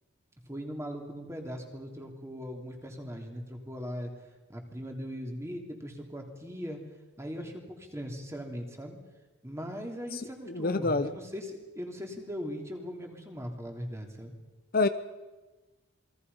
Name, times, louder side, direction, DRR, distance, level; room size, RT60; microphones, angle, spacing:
voice 1, 0.5-4.1 4.5-6.8 7.2-9.0 9.4-14.3, equal, 15° right, 2 dB, 3.1 m, -39 dB
voice 2, 10.5-11.1 14.7-14.9, left 3 dB, 45° left, 10 dB, 0.8 m, -26 dB
28.0 x 21.5 x 5.6 m, 1.2 s
head